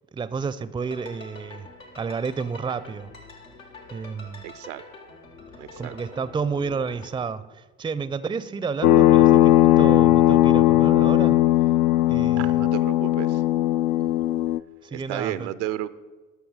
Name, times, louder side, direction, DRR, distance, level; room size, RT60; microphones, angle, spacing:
voice 1, 0.1-1.7 2.0-3.1 3.9-4.4 5.8-11.4 12.1-12.6 14.8-15.5, right 5 dB, 15° right, 0.5 m, -31 dB
sound 1, 0.8-7.1, left 3 dB, 85° left, 1.3 m, -46 dB
voice 2, 4.4-4.8 5.6-5.9 12.4-13.4 14.9-15.9, right 13 dB, 70° right, 0.6 m, -32 dB
sound 2, 8.8-14.6, left 14 dB, 60° left, 0.5 m, -18 dB
14.5 x 5.8 x 5.6 m
figure-of-eight pair, 50°, 38 cm